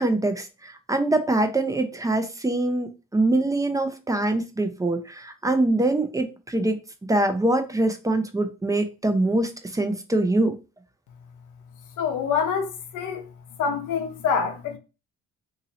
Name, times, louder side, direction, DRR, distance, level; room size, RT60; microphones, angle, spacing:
voice 1, 0.0-6.8 7.1-10.5, right 2 dB, 10° right, 0.6 m, -24 dB
voice 2, 12.0-13.2 13.6-14.8, left 6 dB, 80° left, 0.9 m, -26 dB
2.7 x 2.7 x 4.1 m
cardioid pair, 90°, 30 cm